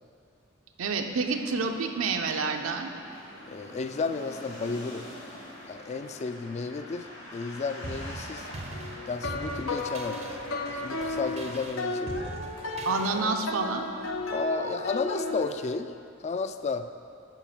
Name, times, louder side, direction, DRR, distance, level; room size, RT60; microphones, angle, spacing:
voice 1, 0.8-2.9 12.8-13.8, right 4 dB, 80° right, 4 dB, 0.6 m, -28 dB
sound 1, 1.1-11.7, left 1 dB, 65° left, 2.1 m, -45 dB
voice 2, 3.5-5.1 5.7-8.6 9.1-12.4 14.3-15.9 16.2-16.9, left 4 dB, 35° left, 10 dB, 0.3 m, -33 dB
sound 2, 7.8-13.5, right 2 dB, 30° right, 0.5 m, -42 dB
sound 3, 8.7-15.5, left 2 dB, 90° left, 0.7 m, -34 dB
9.1 x 5.0 x 5.6 m, 2.5 s
head